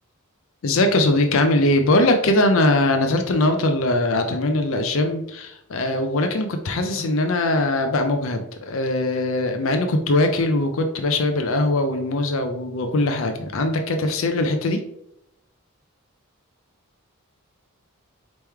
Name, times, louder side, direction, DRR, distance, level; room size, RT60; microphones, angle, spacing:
voice 1, 0.6-14.8, left 2 dB, 65° left, 6 dB, 0.5 m, -21 dB
4.5 x 3.0 x 3.5 m, 0.79 s
head